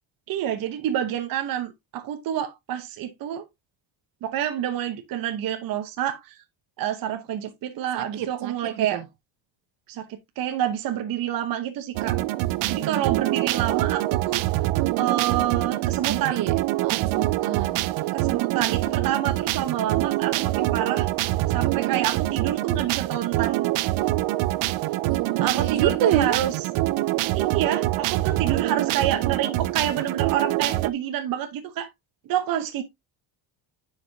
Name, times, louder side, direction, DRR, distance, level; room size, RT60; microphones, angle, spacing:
voice 1, 0.3-3.4 4.2-6.4 6.8-9.0 9.9-10.1 10.4-12.2 12.7-14.4 15.0-16.4 18.1-21.1 21.5-23.7 25.4-26.5 27.3-31.9 32.3-32.8, right 10 dB, 45° right, 0.9 m, -28 dB
voice 2, 7.9-9.1 12.6-13.1 16.1-16.5 16.8-17.9 25.1-26.4, right 10 dB, 75° right, 1.2 m, -28 dB
sound 1, 11.9-30.9, right 17 dB, 90° right, 0.6 m, -25 dB
9.8 x 5.0 x 2.6 m
cardioid pair, 175°, 47 cm